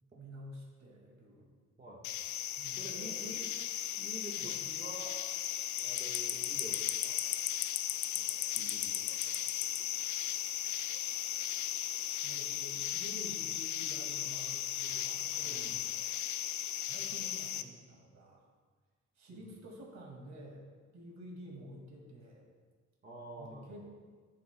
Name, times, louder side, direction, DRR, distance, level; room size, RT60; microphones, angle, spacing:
voice 1, 0.2-1.5 2.6-3.5 4.4-4.5 12.2-15.7 16.8-18.5 19.2-20.7 20.9-22.5 23.4-23.9, equal, 65° right, 0 dB, 2.1 m, -50 dB
voice 2, 1.8-2.3 2.8-3.5 4.0-5.1 5.8-7.2 8.1-9.4 9.6-10.4 15.4-15.8 19.3-19.5 23.0-23.9, right 1 dB, 30° right, -5 dB, 1.4 m, -49 dB
sound 1, 2.0-17.6, left 11 dB, 70° left, 0.5 m, -36 dB
13.0 x 7.2 x 2.2 m, 1.5 s
cardioid pair, 90°, 30 cm